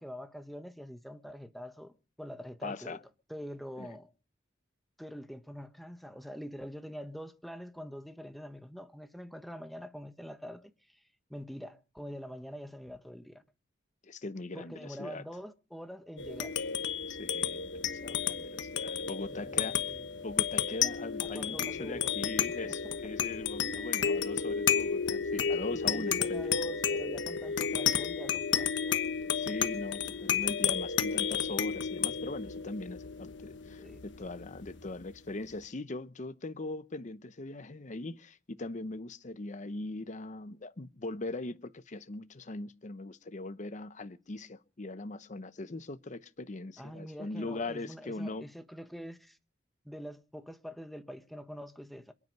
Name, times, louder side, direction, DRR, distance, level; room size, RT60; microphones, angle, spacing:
voice 1, 0.0-1.9 2.2-3.0 3.3-4.1 5.0-10.7 11.3-13.4 14.5-16.5 19.3-20.1 21.3-22.1 22.6-22.7 25.7-28.7 33.8-34.0 46.8-49.4 49.8-52.1, equal, ahead, 1.3 m, -45 dB
voice 2, 2.6-3.0 3.8-4.0 14.0-15.2 17.1-19.8 20.2-26.5 29.3-48.5, left 2 dB, 40° left, 0.8 m, -40 dB
sound 1, 16.2-35.0, left 7 dB, 70° left, 1.2 m, -32 dB
27.0 x 9.7 x 5.4 m
head